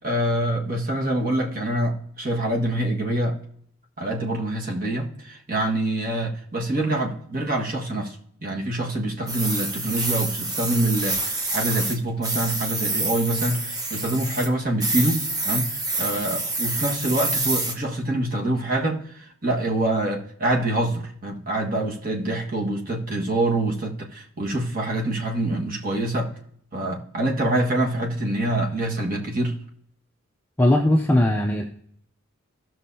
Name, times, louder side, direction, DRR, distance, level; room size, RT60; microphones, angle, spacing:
voice 1, 0.0-3.4 4.0-26.3 26.7-29.6, right 1 dB, 45° right, 1.6 m, -25 dB
sound 1, 9.3-12.0 12.2-14.5 14.8-17.7, right 2 dB, 20° right, 1.0 m, -27 dB
voice 2, 30.6-31.7, left 1 dB, 10° left, 0.5 m, -19 dB
16.0 x 6.2 x 2.7 m
head